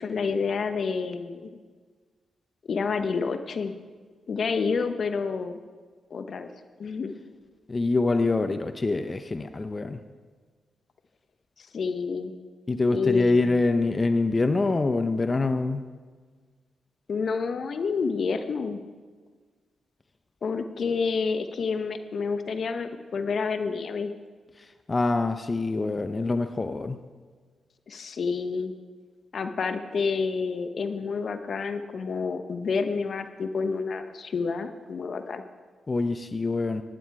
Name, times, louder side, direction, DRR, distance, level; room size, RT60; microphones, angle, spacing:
voice 1, 0.0-1.6 2.7-3.7 4.3-5.6 6.1-6.5 6.8-7.1 11.6-12.3 12.9-13.6 17.1-18.8 20.4-24.1 27.9-28.7 29.3-35.4, left 5 dB, 60° left, 8 dB, 0.9 m, -29 dB
voice 2, 7.7-10.0 12.7-15.9 24.9-27.0 35.9-36.8, left 3 dB, 35° left, 9 dB, 0.8 m, -25 dB
15.5 x 10.5 x 4.8 m, 1.5 s
supercardioid pair, 45°, 0 cm